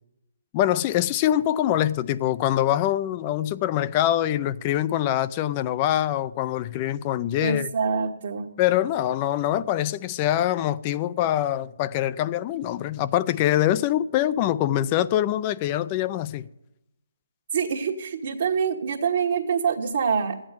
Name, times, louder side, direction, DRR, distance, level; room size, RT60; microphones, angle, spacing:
voice 1, 0.5-7.7 8.6-16.5, left 12 dB, 30° left, 0.5 m, -24 dB
voice 2, 7.4-8.5 17.5-20.4, right 6 dB, 55° right, 1.3 m, -25 dB
13.5 x 8.8 x 9.1 m
hypercardioid pair, 150°, 0 cm